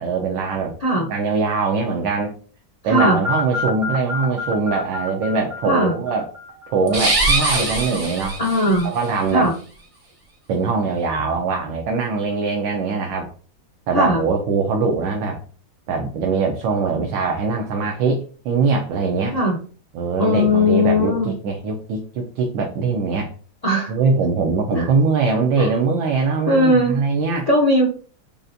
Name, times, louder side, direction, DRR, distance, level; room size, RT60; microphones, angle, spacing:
voice 1, 0.0-2.3 2.8-6.3 6.7-8.4 8.8-9.5 10.5-13.3 13.9-15.4 15.9-19.4 19.9-23.3 23.9-27.5, right 4 dB, 80° right, 2 dB, 1.4 m, -22 dB
voice 2, 2.9-3.2 5.7-5.9 8.4-8.9 9.3-9.5 13.9-14.2 19.3-19.6 20.2-21.3 23.6-23.9 24.7-24.9 25.6-25.7 26.5-27.0 27.5-27.9, left 1 dB, 85° left, -1 dB, 0.3 m, -18 dB
sound 1, 2.9-6.9, left 2 dB, 15° right, 0.7 m, -27 dB
sound 2, 6.9-8.9, right 2 dB, 55° right, 0.3 m, -21 dB
6.8 x 2.5 x 2.5 m, 0.40 s
omnidirectional pair, 2.1 m